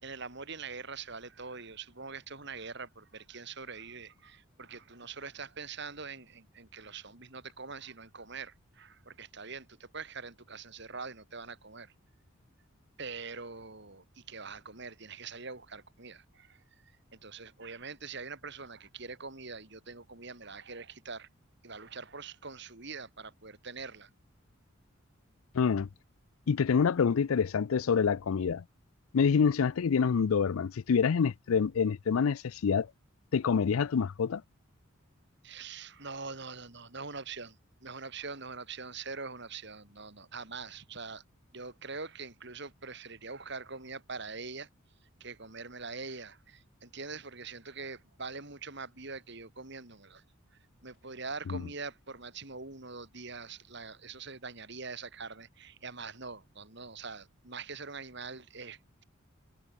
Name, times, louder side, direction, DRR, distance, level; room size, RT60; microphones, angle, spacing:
voice 1, 0.0-11.9 13.0-16.6 17.1-21.3 21.6-24.1 35.4-41.2 41.5-44.7 45.2-50.2 50.8-59.0, right 4 dB, 55° right, 3.6 m, -43 dB
voice 2, 25.5-25.9 26.5-28.6 29.1-32.9 33.3-34.4 51.5-51.6, left 6 dB, 85° left, 0.4 m, -26 dB
head